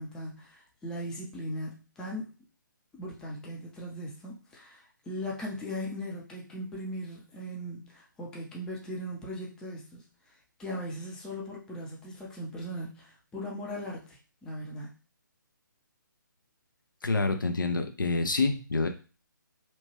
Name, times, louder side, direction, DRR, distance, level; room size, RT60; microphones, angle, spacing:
voice 1, 0.0-2.3 2.9-14.9, equal, 5° left, -2 dB, 0.4 m, -39 dB
voice 2, 17.0-18.9, left 3 dB, 75° left, 6 dB, 0.5 m, -27 dB
2.9 x 2.2 x 2.9 m, 0.35 s
figure-of-eight pair, 140°, 11 cm